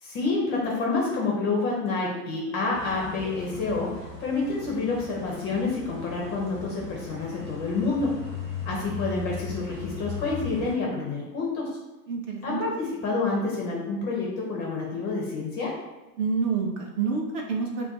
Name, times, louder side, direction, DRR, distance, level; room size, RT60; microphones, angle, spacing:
voice 1, 0.0-8.2 8.7-11.7 12.4-15.7, left 3 dB, 25° left, -2 dB, 0.4 m, -28 dB
sound 1, 2.7-10.7, left 4 dB, 20° right, 0.9 m, -38 dB
voice 2, 12.1-12.6 16.2-17.9, right 5 dB, 40° right, 1 dB, 0.4 m, -28 dB
2.3 x 2.2 x 3.9 m, 1.1 s
hypercardioid pair, 120°, 49 cm